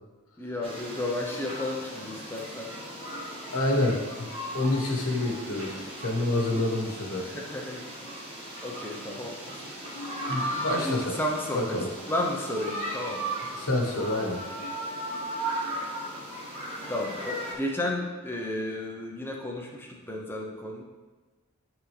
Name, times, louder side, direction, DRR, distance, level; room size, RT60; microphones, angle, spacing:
voice 1, 0.4-2.7 7.2-7.8 8.6-9.6 10.8-11.8 12.1-13.2 16.9-20.8, left 1 dB, 10° left, 0 dB, 0.7 m, -33 dB
sound 1, 0.6-17.5, right 1 dB, 25° right, 1.6 m, -37 dB
voice 2, 3.5-4.3 4.5-7.4 10.3-11.2 11.5-11.9 13.5-14.4, left 2 dB, 70° left, 0 dB, 1.2 m, -28 dB
10.5 x 3.7 x 3.3 m, 1.3 s
head